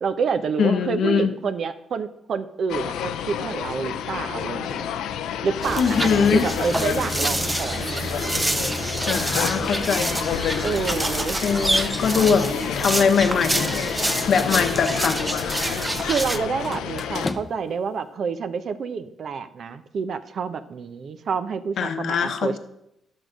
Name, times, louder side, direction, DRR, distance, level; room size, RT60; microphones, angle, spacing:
voice 1, 0.0-4.9 5.4-8.1 10.6-11.4 16.0-22.6, right 5 dB, 55° right, 11 dB, 0.8 m, -28 dB
voice 2, 0.6-1.3 5.8-6.4 9.1-10.2 10.5-10.7 11.4-12.5 12.8-13.8 14.3-15.2 21.8-22.6, left 6 dB, 65° left, 7 dB, 0.9 m, -22 dB
sound 1, 2.7-17.3, left 8 dB, 85° left, 0.6 m, -29 dB
sound 2, 5.6-16.4, right 1 dB, 15° right, 0.7 m, -27 dB
sound 3, 13.4-14.5 14.8-15.2 16.6-17.8, left 3 dB, 25° left, 0.7 m, -35 dB
10.5 x 6.4 x 5.1 m, 0.81 s
cardioid pair, 90°, 0 cm